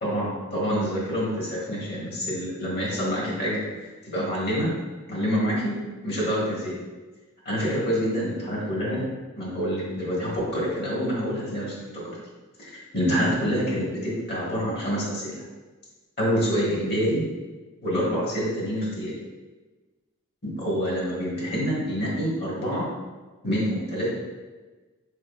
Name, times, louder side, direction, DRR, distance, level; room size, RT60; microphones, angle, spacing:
voice 1, 0.0-4.7 5.1-5.7 6.0-6.7 7.4-9.0 9.4-12.0 12.6-15.4 16.2-17.2 17.8-19.1 20.4-22.8 23.4-24.1, equal, 50° left, -5 dB, 1.3 m, -27 dB
4.3 x 3.5 x 2.3 m, 1.3 s
head